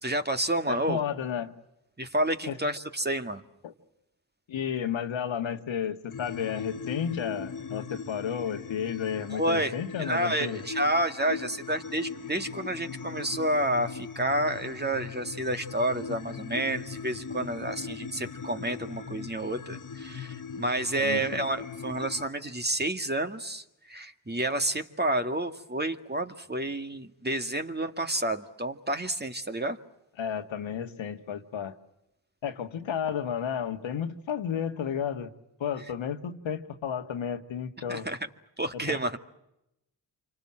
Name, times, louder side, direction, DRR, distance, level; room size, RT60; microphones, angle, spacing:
voice 1, 0.0-1.0 2.0-3.4 9.3-9.7 10.0-29.8 37.9-38.2 38.6-39.2, right 1 dB, 20° right, 7 dB, 2.1 m, -30 dB
voice 2, 0.7-1.5 2.5-2.6 3.6-3.7 4.5-10.7 21.0-21.4 30.2-31.8 32.4-35.3 35.6-38.1 38.7-39.0, left 8 dB, 70° left, 7 dB, 1.9 m, -32 dB
sound 1, 6.1-22.3, left 5 dB, 40° left, 1.6 m, -40 dB
27.5 x 25.5 x 7.6 m, 0.88 s
supercardioid pair, 40°, 48 cm